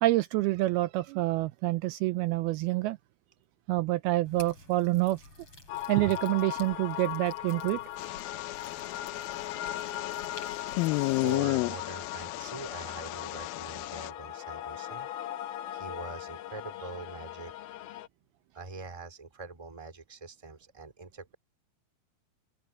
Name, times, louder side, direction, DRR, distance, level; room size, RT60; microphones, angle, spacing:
voice 1, 0.0-3.0 3.7-5.2 5.9-7.8, right 18 dB, 80° right, 2.4 m, -27 dB
sound 1, 4.2-11.4, left 3 dB, 35° left, 8.0 m, -52 dB
sound 2, 5.7-18.1, left 13 dB, 70° left, 2.8 m, -39 dB
sound 3, 8.0-14.1, left 22 dB, 85° left, 2.1 m, -33 dB
voice 2, 10.8-15.1 15.7-17.5 18.5-21.4, right 3 dB, 10° right, 2.2 m, -43 dB
open air
omnidirectional pair, 4.7 m